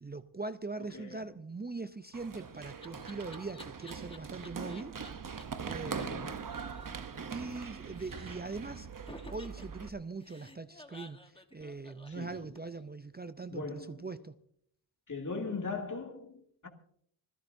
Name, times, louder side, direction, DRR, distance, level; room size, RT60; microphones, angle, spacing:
voice 1, 0.0-5.0 5.6-6.4 7.3-8.9 9.3-14.4, right 3 dB, 20° right, 0.5 m, -41 dB
voice 2, 0.8-1.3 5.8-6.5 12.1-12.4 13.5-14.1 15.1-16.7, left 4 dB, 35° left, 2.5 m, -40 dB
Laughter, 2.0-5.1 5.4-5.5 5.7-5.8 6.0-6.1 6.3-7.7 7.9-8.6 9.1-12.8, left 2 dB, 10° left, 1.2 m, -53 dB
Run, 2.1-9.9, right 6 dB, 40° right, 0.9 m, -42 dB
25.5 x 16.0 x 2.7 m
wide cardioid pair, 95°, 50 cm